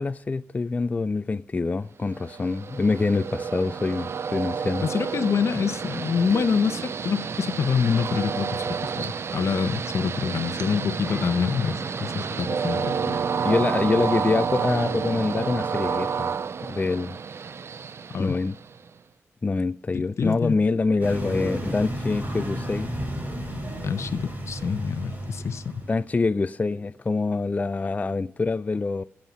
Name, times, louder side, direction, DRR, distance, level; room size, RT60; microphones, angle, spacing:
voice 1, 0.0-4.9 13.1-16.3 16.6-17.2 18.2-18.6 19.4-22.9 25.9-29.0, left 3 dB, 30° left, 0.4 m, -25 dB
Train, 2.1-18.9, right 6 dB, 55° right, 0.5 m, -30 dB
voice 2, 4.8-13.0 18.1-18.4 19.9-20.5 23.8-25.8, left 6 dB, 65° left, 0.8 m, -26 dB
sound 1, 11.1-16.2, equal, 10° right, 5.4 m, -43 dB
sound 2, 21.0-26.1, equal, 35° right, 5.5 m, -32 dB
15.5 x 7.3 x 6.2 m
cardioid pair, 55°, 5 cm